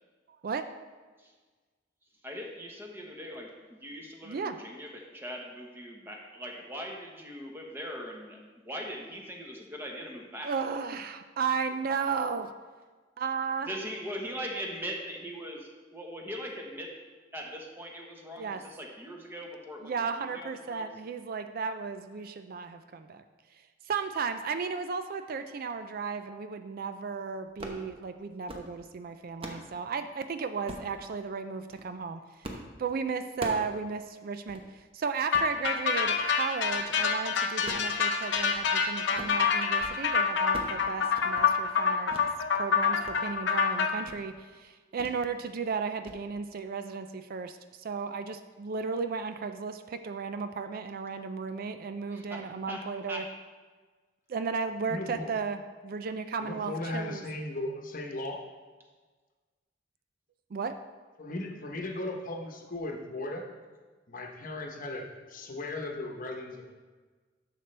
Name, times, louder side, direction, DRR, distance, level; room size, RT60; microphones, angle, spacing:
voice 1, 0.3-0.6 4.2-4.6 10.4-12.5 13.2-13.7 18.4-18.6 19.8-23.2 23.9-32.2 32.8-42.2 42.5-53.2 54.3-57.2 60.5-60.8, right 5 dB, 50° right, 9 dB, 0.4 m, -34 dB
voice 2, 2.2-8.4 8.6-10.5 13.7-17.0 17.3-20.1 20.3-20.9 52.1-53.3, equal, 15° right, 0 dB, 1.2 m, -40 dB
sound 1, 27.5-27.9 28.3-28.7 29.1-29.7 30.7-30.9 31.6-31.9 32.4-32.7 33.0-33.7 34.1-34.2 34.5-34.7 35.2-35.5 36.0-36.3 36.7-37.1 37.5-38.7 39.0-39.4 39.7-40.0 40.3-40.8 41.1-41.5 42.1-42.3 42.7-43.2 43.5-43.6 44.0-44.3 45.0-45.2 45.5-45.7 46.1-46.2, right 1 dB, 30° right, 0.9 m, -43 dB
sound 2, 35.3-43.9, left 6 dB, 65° left, 0.8 m, -27 dB
voice 3, 54.9-55.3 56.4-58.4 61.2-63.4 64.1-66.7, left 2 dB, 50° left, 2 dB, 1.0 m, -37 dB
10.5 x 6.7 x 3.3 m, 1.4 s
head